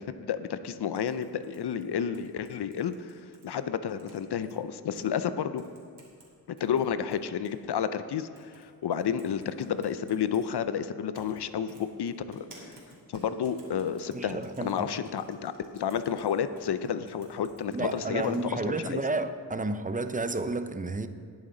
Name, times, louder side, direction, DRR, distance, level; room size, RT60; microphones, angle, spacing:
voice 1, 0.0-3.1 3.4-5.6 6.6-12.8 13.1-19.0, left 8 dB, 80° left, 11 dB, 0.6 m, -31 dB
sound 1, 0.9-3.5 3.9-4.5 5.0-5.1 5.6-6.3 6.6-7.6 8.4-8.7 8.9-10.5 11.1-11.4 11.7-18.4, right 2 dB, 80° right, 3.0 m, -55 dB
voice 2, 14.1-14.8 17.7-21.1, right 2 dB, 20° right, 10 dB, 0.5 m, -31 dB
19.5 x 7.3 x 3.9 m, 2.2 s
wide cardioid pair, 100°, 39 cm